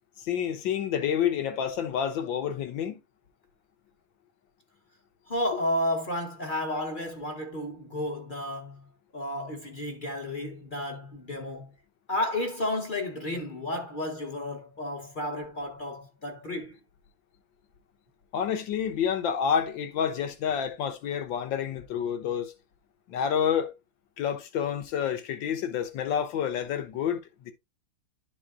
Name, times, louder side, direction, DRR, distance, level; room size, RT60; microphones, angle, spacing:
voice 1, 0.2-3.0 18.3-22.5 23.1-23.7 24.2-27.5, left 8 dB, 70° left, 1.6 m, -29 dB
voice 2, 5.3-8.9 9.1-11.7 12.1-16.8, left 1 dB, 35° left, 0.8 m, -32 dB
11.5 x 4.7 x 2.4 m
omnidirectional pair, 2.2 m